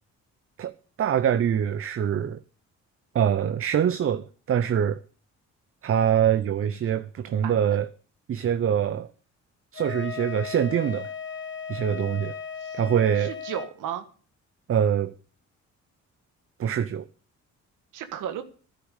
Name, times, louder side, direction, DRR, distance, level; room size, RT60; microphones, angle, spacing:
voice 1, 0.6-2.4 3.1-5.0 5.8-7.9 8.3-9.1 9.7-11.1 11.7-12.4 12.7-13.3 14.7-15.1 16.6-17.0, right 9 dB, 45° right, 0.7 m, -24 dB
Wind instrument woodwind instrument, 9.7-13.7, left 7 dB, 40° left, 2.2 m, -36 dB
voice 2, 12.6-14.0 17.9-18.4, right 10 dB, 85° right, 1.7 m, -35 dB
12.0 x 10.0 x 6.5 m
cardioid pair, 90°, 30 cm